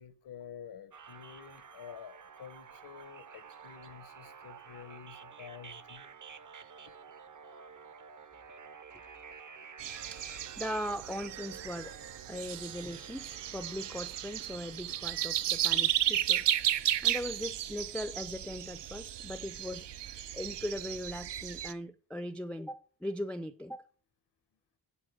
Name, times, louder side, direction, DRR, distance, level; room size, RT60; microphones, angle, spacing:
voice 1, 0.0-6.1, left 8 dB, 75° left, 0.9 m, -49 dB
sound 1, 0.9-15.9, right 6 dB, 45° right, 0.8 m, -51 dB
sound 2, 9.8-21.7, right 11 dB, 80° right, 0.6 m, -34 dB
voice 2, 10.1-12.0 12.3-16.4 17.0-23.8, equal, 5° left, 0.4 m, -39 dB
10.0 x 4.9 x 6.3 m
wide cardioid pair, 120°, 41 cm